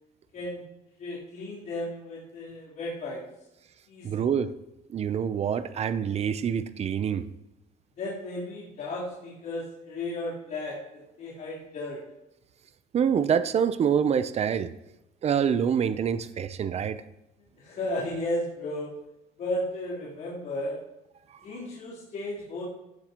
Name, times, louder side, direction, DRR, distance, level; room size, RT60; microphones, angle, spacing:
voice 1, 1.0-3.2 3.9-4.3 8.0-12.0 17.6-18.9 19.4-20.8 21.4-22.6, left 1 dB, 55° left, -9 dB, 3.7 m, -34 dB
voice 2, 4.0-4.5 4.9-7.3 12.9-14.7 15.2-17.0, right 7 dB, 40° right, 12 dB, 0.6 m, -26 dB
15.5 x 9.5 x 3.0 m, 0.90 s
cardioid pair, 110°, 17 cm